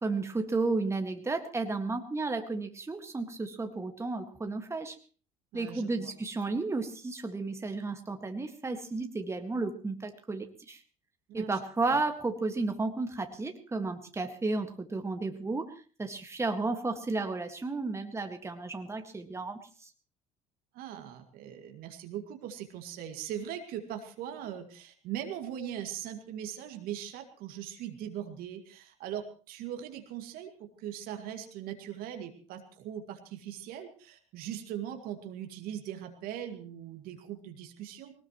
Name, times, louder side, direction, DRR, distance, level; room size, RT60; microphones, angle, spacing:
voice 1, 0.0-5.0 5.5-10.8 11.3-15.7 16.0-19.9, right 3 dB, 15° right, 5 dB, 1.9 m, -33 dB
voice 2, 5.5-6.1 11.3-11.6 11.9-12.0 20.7-38.1, right 10 dB, 60° right, 6 dB, 2.2 m, -40 dB
20.5 x 19.0 x 3.1 m, 0.39 s
hypercardioid pair, 65°, 17 cm